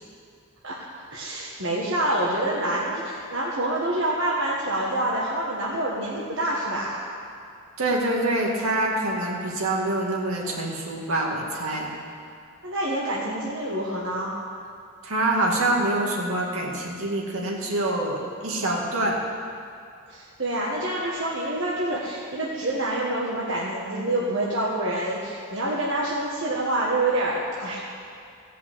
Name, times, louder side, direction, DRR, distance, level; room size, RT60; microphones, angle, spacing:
voice 1, 1.1-7.0 12.6-14.4 20.1-27.9, right 1 dB, 60° right, -5 dB, 1.5 m, -27 dB
voice 2, 7.8-11.9 15.0-19.2, right 1 dB, 80° right, -2 dB, 2.2 m, -25 dB
16.5 x 5.8 x 7.8 m, 2.4 s
head